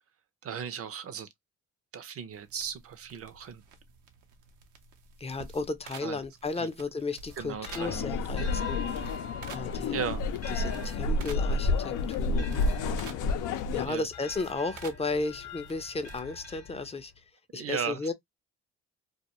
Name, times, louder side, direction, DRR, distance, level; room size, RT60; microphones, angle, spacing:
voice 1, 0.4-1.3 1.9-3.6 6.0-6.2 6.6-6.7 7.4-8.1 9.9-10.2 13.8-14.1 17.5-18.1, right 7 dB, 50° right, 0.6 m, -36 dB
sound 1, 2.3-16.2, right 5 dB, 85° right, 0.7 m, -51 dB
voice 2, 5.2-9.1 9.5-10.0 10.5-13.0 13.7-17.2 17.5-18.1, left 3 dB, 20° left, 0.5 m, -34 dB
sound 2, 7.3-17.2, left 4 dB, 55° left, 0.8 m, -45 dB
sound 3, 7.7-13.9, left 3 dB, 85° left, 0.5 m, -30 dB
2.3 x 2.2 x 2.9 m
cardioid pair, 90°, 30 cm